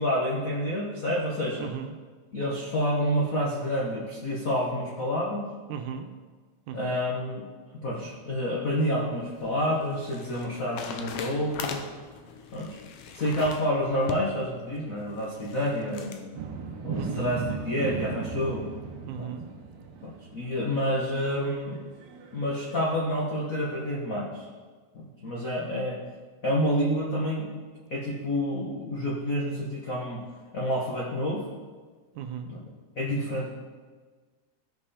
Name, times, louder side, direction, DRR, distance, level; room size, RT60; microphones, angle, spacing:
voice 1, 0.0-1.7 2.3-5.4 6.7-7.5 7.8-11.8 12.5-12.8 13.1-16.4 16.8-18.7 19.2-19.3 20.0-21.9 22.3-24.5 24.9-26.0 26.4-27.5 27.9-30.2 30.5-31.4 32.4-32.6 33.0-33.5, equal, 65° left, -4 dB, 0.8 m, -28 dB
voice 2, 1.6-2.0 5.7-6.1 6.7-7.0 16.9-17.4 19.1-19.5 32.2-32.5, right 8 dB, 85° right, 6 dB, 2.2 m, -36 dB
sound 1, 8.9-16.2, left 6 dB, 90° left, 1.2 m, -41 dB
sound 2, 16.3-23.9, right 5 dB, 65° right, 1.7 m, -37 dB
14.5 x 5.5 x 4.3 m, 1.4 s
omnidirectional pair, 3.5 m